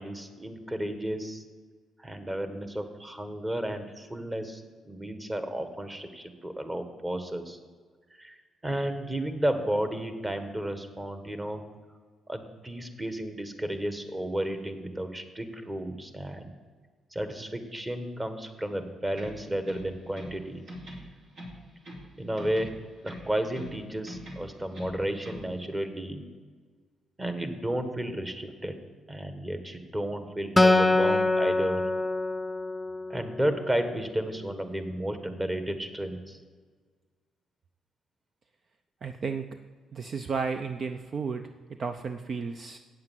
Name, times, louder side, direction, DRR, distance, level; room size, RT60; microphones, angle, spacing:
voice 1, 0.0-1.4 2.0-7.6 8.2-8.4 8.6-11.6 12.3-16.5 17.1-20.6 22.2-22.7 23.0-26.2 27.2-28.7 29.1-31.8 33.1-36.4, right 1 dB, 15° right, 7 dB, 1.4 m, -32 dB
sound 1, 19.1-20.4 20.7-22.1 22.4-23.8 24.1-25.5, equal, 65° right, 2.9 m, -43 dB
Acoustic guitar, 30.6-34.0, left 2 dB, 10° left, 0.4 m, -25 dB
voice 2, 39.0-39.5 39.9-41.4 41.8-42.8, right 5 dB, 45° right, 7 dB, 0.5 m, -33 dB
8.5 x 7.7 x 7.6 m, 1.6 s
cardioid pair, 90°, 0 cm